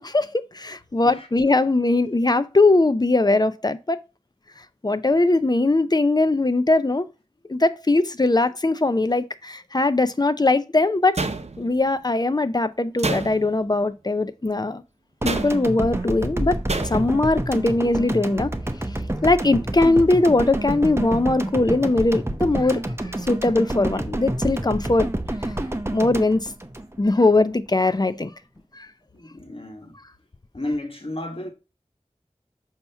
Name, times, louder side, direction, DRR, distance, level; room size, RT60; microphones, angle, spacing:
voice 1, 0.0-4.0 4.8-7.1 7.5-11.2 11.6-14.8 15.2-16.6 16.8-18.5 19.2-25.1 25.9-26.4 27.0-28.3 28.8-28.9, left 2 dB, 35° left, 0.5 m, -20 dB
sound 1, 11.2-11.9 13.0-13.7 15.3-15.8 16.7-17.2, right 3 dB, 60° right, 0.7 m, -28 dB
sound 2, 15.2-27.4, right 1 dB, 20° right, 0.8 m, -28 dB
voice 2, 29.1-29.9 30.5-31.5, left 1 dB, 50° left, 1.3 m, -32 dB
6.7 x 2.9 x 5.6 m
wide cardioid pair, 45°, 12 cm